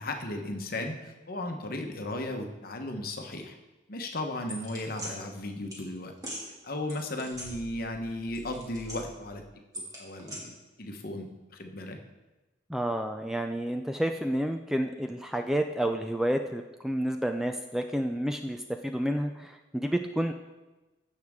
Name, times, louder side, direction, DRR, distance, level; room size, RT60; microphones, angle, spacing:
voice 1, 0.0-3.6 3.9-6.1 6.5-9.4 9.7-10.5 10.8-12.0, left 1 dB, 50° left, 4 dB, 1.1 m, -36 dB
sound 1, 4.5-5.1 5.7-5.8 6.2-6.4 6.9-8.0 8.3-9.3 9.7-10.4, equal, 20° right, 2.2 m, -41 dB
voice 2, 12.7-20.3, right 1 dB, ahead, 5 dB, 0.3 m, -30 dB
15.5 x 6.6 x 3.6 m, 1.1 s
head